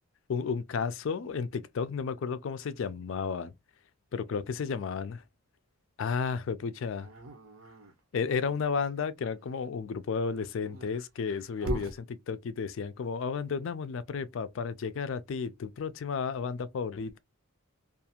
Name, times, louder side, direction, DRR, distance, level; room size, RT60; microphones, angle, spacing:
voice 1, 0.3-3.5 4.1-5.2 6.0-7.1 8.1-17.2, left 5 dB, 60° left, 0.3 m, -33 dB
Dog, 7.0-8.6 10.2-12.0, right 1 dB, 70° right, 0.7 m, -39 dB
2.4 x 2.3 x 2.8 m
head